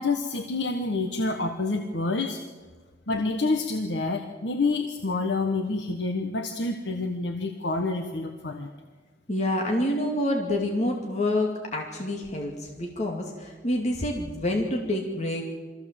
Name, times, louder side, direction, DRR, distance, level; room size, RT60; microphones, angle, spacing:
voice 1, 0.0-2.4 3.1-8.7, left 3 dB, 85° left, 4 dB, 1.3 m, -28 dB
voice 2, 9.3-15.4, left 1 dB, 40° left, 0 dB, 2.5 m, -27 dB
23.5 x 15.0 x 7.6 m, 1.4 s
head